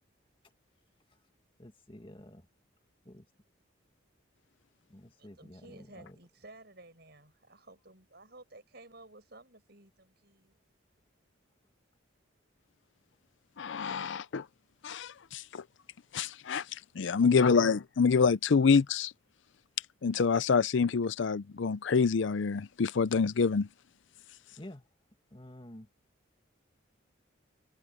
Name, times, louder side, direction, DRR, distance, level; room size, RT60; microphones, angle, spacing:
voice 1, 1.6-2.5 3.0-3.3 4.9-6.2 17.2-17.7 24.6-24.9 25.3-25.9, left 1 dB, 25° left, 2.2 m, -49 dB
voice 2, 5.2-10.6, right 2 dB, 55° right, 7.3 m, -54 dB
voice 3, 13.6-14.5 14.8-15.6 16.1-19.1 20.0-23.7, left 5 dB, 70° left, 0.5 m, -27 dB
head